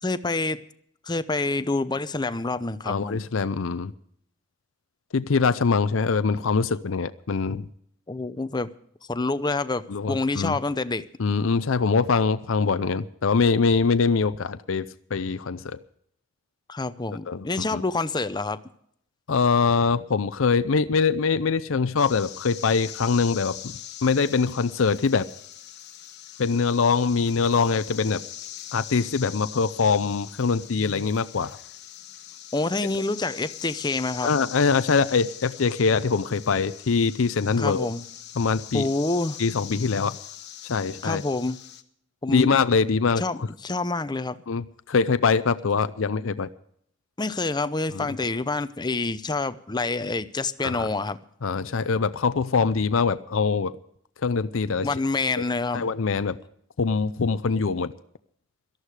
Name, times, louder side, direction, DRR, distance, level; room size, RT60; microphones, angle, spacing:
voice 1, 0.0-0.6 1.0-3.2 8.1-8.7 9.1-11.1 16.7-18.6 32.5-34.3 37.6-38.0 38.7-39.4 41.0-41.6 42.2-42.6 43.2-44.4 47.2-51.2 54.8-55.9, left 3 dB, 20° left, 13 dB, 0.6 m, -27 dB
voice 2, 2.9-3.9 5.1-7.7 9.9-10.6 11.2-15.8 17.3-17.4 17.7-17.8 19.3-23.6 24.0-25.2 26.4-28.2 28.7-31.6 34.2-37.9 38.4-38.9 39.4-40.2 40.7-41.2 42.3-43.5 44.5-46.5 47.9-48.1 50.6-50.9 51.4-53.7 54.2-54.9 55.7-56.4 56.8-57.9, left 5 dB, 70° left, 13 dB, 0.6 m, -23 dB
sound 1, 22.0-41.8, left 12 dB, 55° left, 1.2 m, -42 dB
18.0 x 13.0 x 4.9 m, 0.68 s
head